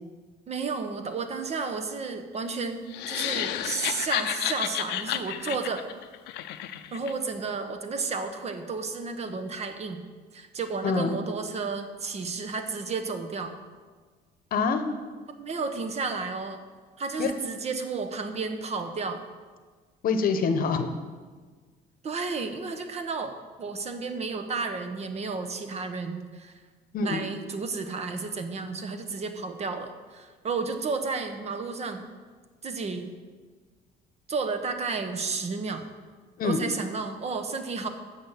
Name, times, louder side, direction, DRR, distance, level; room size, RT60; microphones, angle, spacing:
voice 1, 0.5-5.9 6.9-10.0 10.3-13.5 15.4-16.6 17.0-19.2 22.0-26.5 27.0-32.0 32.6-33.1 34.3-35.9 36.4-37.9, right 4 dB, 40° right, 8 dB, 0.9 m, -32 dB
sound 1, 2.9-7.1, left 12 dB, 85° left, 0.5 m, -31 dB
voice 2, 10.8-11.2 14.5-14.8 17.2-17.3 20.0-20.9 26.9-27.2 36.4-36.6, left 5 dB, 60° left, 8 dB, 0.9 m, -25 dB
8.7 x 6.5 x 5.7 m, 1.5 s
cardioid pair, 110°, 17 cm